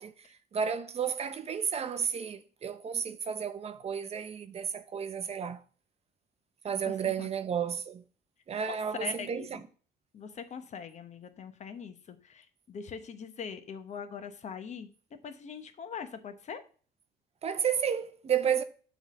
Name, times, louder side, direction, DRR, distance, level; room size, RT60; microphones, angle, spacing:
voice 1, 0.0-5.6 6.6-8.0 8.5-9.6 17.4-18.6, right 7 dB, 40° right, 0.7 m, -32 dB
voice 2, 8.7-9.6 10.1-14.9 15.2-16.6, left 6 dB, 45° left, 0.9 m, -42 dB
7.1 x 3.6 x 6.1 m
cardioid pair, 110°, 17 cm